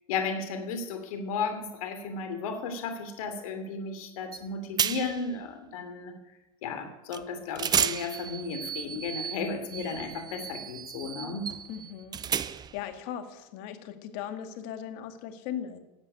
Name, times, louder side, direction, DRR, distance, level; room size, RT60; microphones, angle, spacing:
voice 1, 0.1-6.1 6.6-11.5, left 4 dB, 75° left, 6 dB, 3.0 m, -34 dB
sound 1, 4.3-4.4 4.8-5.3 7.1-7.2 7.6-12.8, right 8 dB, 20° right, 0.6 m, -33 dB
voice 2, 11.7-15.8, left 9 dB, 55° left, 8 dB, 2.2 m, -39 dB
13.5 x 8.3 x 9.8 m, 0.96 s
supercardioid pair, 115°, 18 cm